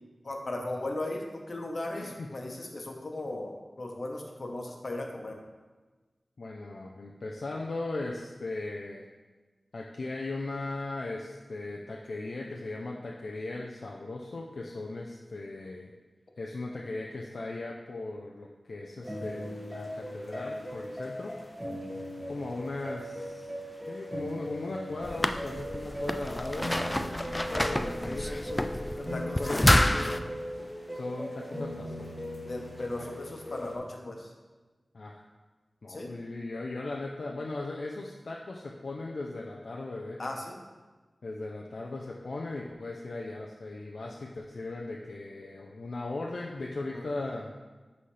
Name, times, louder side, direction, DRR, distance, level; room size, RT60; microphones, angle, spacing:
voice 1, 0.2-5.4 21.7-21.8 29.1-29.6 29.9-30.2 32.5-34.3 35.9-36.1 40.2-40.6 46.9-47.0, left 2 dB, 55° left, 1 dB, 1.1 m, -37 dB
voice 2, 1.9-2.3 6.4-9.1 9.7-15.9 16.4-21.3 22.3-23.5 23.9-26.7 27.5-29.8 30.9-32.1 33.0-33.1 34.9-35.2 35.8-40.2 41.2-47.5, left 2 dB, 75° left, -1 dB, 0.5 m, -38 dB
sound 1, 19.0-33.8, equal, ahead, 1.7 m, -39 dB
sound 2, 25.0-30.2, left 1 dB, 15° left, 0.3 m, -28 dB
11.0 x 4.1 x 3.3 m, 1.3 s
wide cardioid pair, 75°, 0 cm